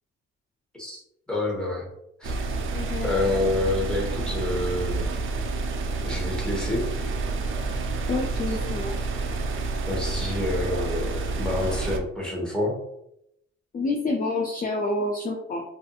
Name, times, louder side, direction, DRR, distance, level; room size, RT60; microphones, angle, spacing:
voice 1, 1.3-1.9 2.2-2.4 3.0-5.0 6.0-6.9 9.9-12.8, left 2 dB, 5° left, -3 dB, 1.0 m, -28 dB
sound 1, 2.2-12.0, right 3 dB, 45° right, 0.4 m, -29 dB
voice 2, 2.7-3.1 8.1-9.0 13.7-15.6, left 2 dB, 30° left, 0 dB, 0.4 m, -28 dB
2.6 x 2.5 x 2.3 m, 0.79 s
cardioid pair, 90°, 30 cm